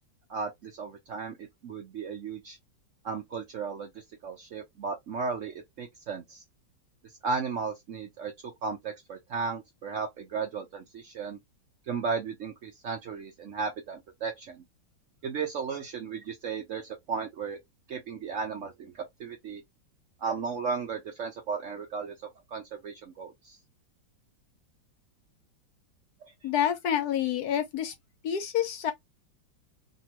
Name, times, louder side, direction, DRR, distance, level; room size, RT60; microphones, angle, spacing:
voice 1, 0.3-2.6 3.0-6.4 7.2-11.4 11.9-14.6 15.2-17.6 17.9-19.6 20.2-23.6, right 5 dB, 85° right, 0.6 m, -35 dB
voice 2, 26.4-27.9 28.2-28.9, left 9 dB, 65° left, 1.0 m, -28 dB
2.9 x 2.6 x 2.9 m
omnidirectional pair, 2.1 m